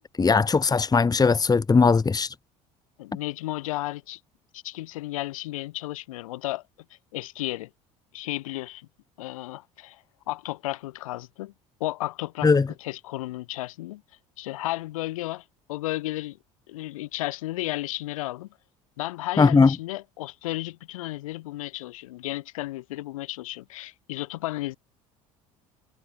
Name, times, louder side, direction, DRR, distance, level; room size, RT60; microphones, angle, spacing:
voice 1, 0.2-2.3 12.4-12.7 19.4-19.7, left 4 dB, 20° left, 2.0 m, -19 dB
voice 2, 3.0-4.2 4.5-6.6 7.1-7.7 8.1-8.9 9.2-11.5 11.8-14.0 14.4-16.4 16.7-18.5 19.0-24.8, left 17 dB, 75° left, 5.7 m, -33 dB
hypercardioid pair, 65°, 18 cm